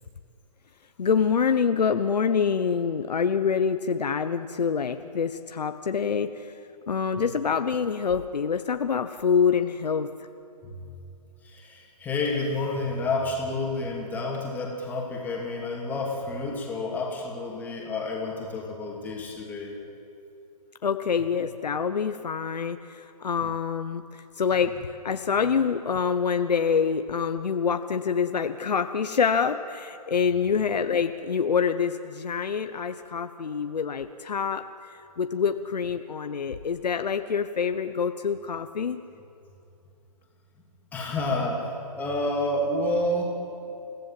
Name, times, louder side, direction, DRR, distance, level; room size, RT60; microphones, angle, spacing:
voice 1, 1.0-6.6 6.9-10.1 20.8-34.7 35.2-39.0, left 6 dB, 80° left, 8 dB, 1.0 m, -26 dB
voice 2, 11.4-19.8 40.9-43.2, left 2 dB, 10° left, -2 dB, 2.9 m, -29 dB
29.5 x 16.0 x 7.6 m, 2.6 s
hypercardioid pair, 155°, 21 cm